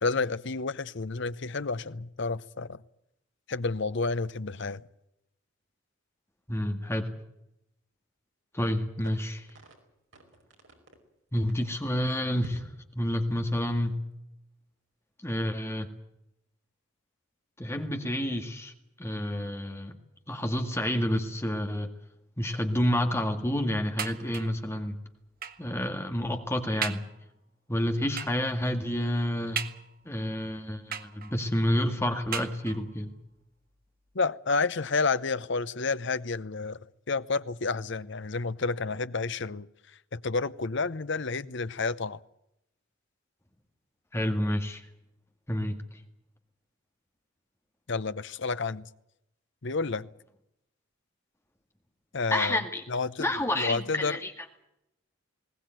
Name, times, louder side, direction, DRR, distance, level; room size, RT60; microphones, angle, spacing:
voice 1, 0.0-2.8 3.5-4.8 34.1-36.8 37.1-42.2 47.9-48.9 49.6-50.1 52.1-54.2, left 4 dB, 55° left, 0.8 m, -30 dB
voice 2, 6.5-7.1 8.5-9.5 11.3-12.7 13.0-14.0 15.2-15.9 17.6-18.7 19.0-19.9 20.3-21.9 22.4-25.0 25.6-27.0 27.7-29.6 30.1-33.1 44.1-44.9 45.5-45.8 52.3-52.8 53.2-54.3, left 1 dB, 10° left, 1.9 m, -29 dB
sound 1, 9.0-9.8 10.1-11.0 11.4-11.7 12.4-12.9, equal, 60° right, 5.2 m, -47 dB
sound 2, 24.0-24.7 25.4-25.7 26.3-26.4 26.8-27.2 28.2-28.5 29.6-30.2 30.9-31.5 32.3-33.0 33.8-33.9 34.2-34.3, right 8 dB, 45° right, 1.4 m, -37 dB
21.0 x 18.0 x 9.2 m
head